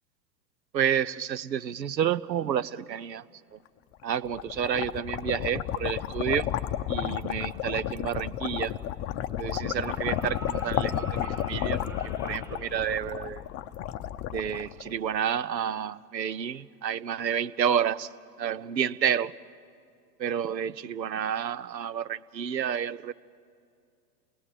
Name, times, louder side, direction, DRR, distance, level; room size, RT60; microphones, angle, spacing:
voice 1, 0.7-3.2 3.5-3.6 4.0-6.5 6.9-8.7 9.4-11.9 12.2-13.4 14.3-18.1 18.4-19.3 20.2-23.1, right 8 dB, 85° right, 17 dB, 0.7 m, -30 dB
sound 1, 4.0-15.2, left 11 dB, 30° left, 0.7 m, -32 dB
sound 2, 9.6-12.8 14.6-14.7, right 2 dB, 5° right, 2.6 m, -46 dB
28.0 x 19.5 x 7.5 m, 2.4 s
figure-of-eight pair, 100°, 50 cm